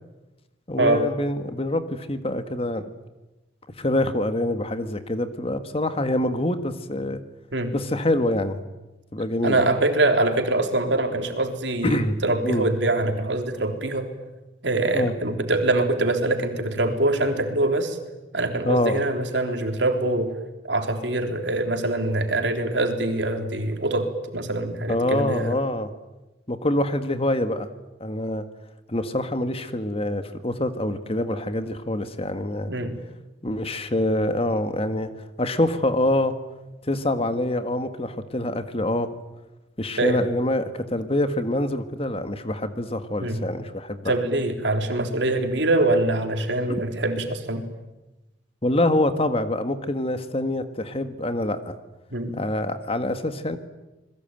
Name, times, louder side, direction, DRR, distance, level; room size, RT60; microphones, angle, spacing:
voice 1, 0.7-2.9 3.8-7.2 7.7-8.6 9.1-9.6 11.8-12.7 14.9-15.2 18.7-19.0 24.9-25.9 26.5-27.7 28.0-28.5 28.9-32.7 33.4-35.1 35.4-36.4 36.9-39.1 39.8-44.1 48.6-51.7 52.4-53.6, left 1 dB, 35° left, 9 dB, 1.8 m, -25 dB
voice 2, 9.4-14.1 14.6-18.0 18.3-20.3 20.7-25.6 32.7-33.0 40.0-40.2 43.2-43.5 44.1-47.7 52.1-52.4, right 2 dB, 80° right, 5 dB, 3.6 m, -24 dB
28.0 x 21.0 x 9.2 m, 1.0 s
head